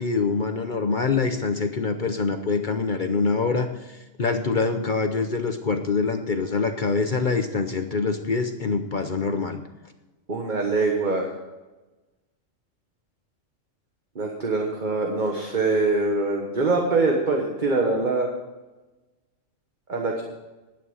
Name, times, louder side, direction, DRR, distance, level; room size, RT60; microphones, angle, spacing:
voice 1, 0.0-3.9 4.2-9.6, left 4 dB, 45° left, 7 dB, 0.8 m, -25 dB
voice 2, 10.3-11.3 14.1-18.3 19.9-20.2, right 3 dB, 40° right, 1 dB, 1.4 m, -23 dB
11.5 x 9.0 x 5.5 m, 1.1 s
omnidirectional pair, 1.4 m